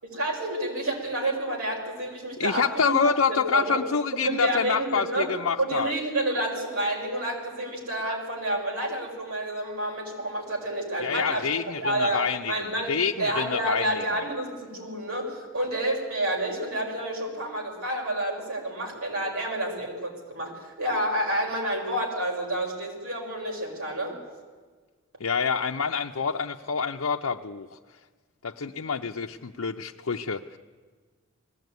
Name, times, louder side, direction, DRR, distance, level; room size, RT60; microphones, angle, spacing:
voice 1, 0.0-3.8 4.2-5.3 5.6-24.2, right 1 dB, 85° right, 0 dB, 5.2 m, -29 dB
voice 2, 2.4-5.9 11.0-12.5 12.9-14.0 25.2-27.7 28.4-30.6, left 5 dB, 75° left, 1 dB, 0.6 m, -27 dB
20.5 x 15.5 x 9.4 m, 1.4 s
head